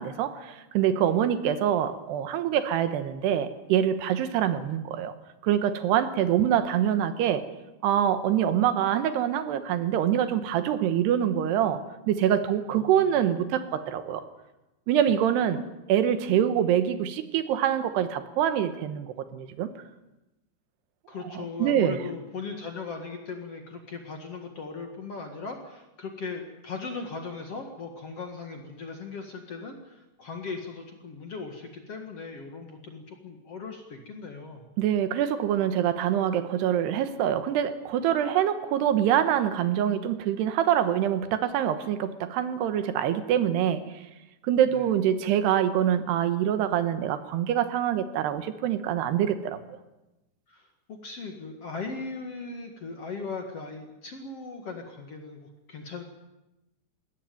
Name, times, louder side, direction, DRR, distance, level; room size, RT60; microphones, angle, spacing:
voice 1, 0.0-5.1 5.4-7.5 7.8-14.2 14.9-19.7 21.3-22.0 34.8-43.9 44.4-49.6, right 10 dB, 80° right, 11 dB, 3.2 m, -25 dB
voice 2, 12.7-13.1 21.1-34.6 44.7-44.8 50.5-56.0, left 4 dB, 50° left, 4 dB, 2.1 m, -38 dB
21.0 x 17.0 x 9.2 m, 0.98 s
omnidirectional pair, 4.9 m